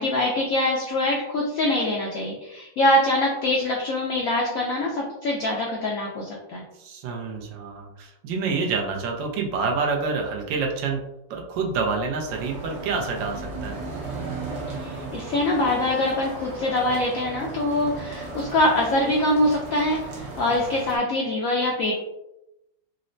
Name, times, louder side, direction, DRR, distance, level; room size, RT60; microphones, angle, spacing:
voice 1, 0.0-6.6 14.8-22.0, left 1 dB, 80° left, -1 dB, 0.7 m, -24 dB
voice 2, 6.8-11.0 11.3-13.7, right 4 dB, 80° right, 2 dB, 1.3 m, -27 dB
sound 1, 12.3-21.0, right 3 dB, 60° right, 1.0 m, -36 dB
4.0 x 2.0 x 2.5 m, 0.90 s
omnidirectional pair, 2.0 m